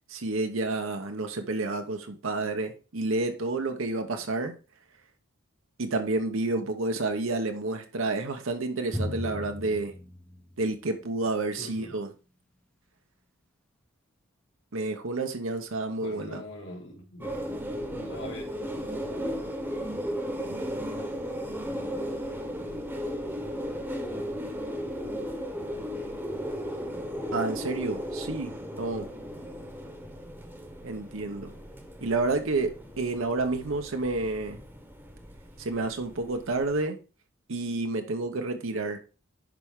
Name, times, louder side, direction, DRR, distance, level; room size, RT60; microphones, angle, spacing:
voice 1, 0.1-4.5 5.8-9.9 10.6-12.1 14.7-16.4 27.3-29.1 30.8-31.5 32.0-34.6 35.6-37.0 37.5-39.0, right 2 dB, 70° right, 0.8 m, -30 dB
Drum, 8.9-11.3, left 1 dB, 5° left, 0.7 m, -37 dB
voice 2, 11.6-12.0 16.0-17.5 17.9-18.4, left 1 dB, 65° left, 2.2 m, -42 dB
sound 1, 17.2-36.8, equal, 10° right, 1.0 m, -36 dB
11.0 x 4.4 x 3.6 m
head